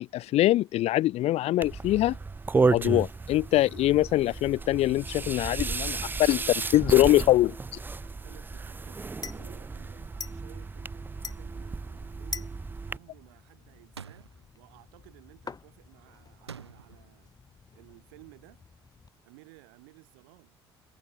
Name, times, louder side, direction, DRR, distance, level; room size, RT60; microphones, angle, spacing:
voice 1, 0.0-2.2 2.7-6.4 6.7-7.5, left 15 dB, 50° left, 0.7 m, -23 dB
sound 1, 1.6-13.0, right 4 dB, 15° right, 0.4 m, -32 dB
voice 2, 5.4-7.4 8.0-12.6 12.9-17.4 17.7-18.6 19.2-20.6, right 28 dB, 65° right, 6.6 m, -56 dB
sound 2, 6.3-19.1, left 5 dB, 30° left, 2.9 m, -47 dB
sound 3, 14.0-14.4 16.5-17.1, right 6 dB, 85° right, 0.5 m, -45 dB
figure-of-eight pair, 55°, 13 cm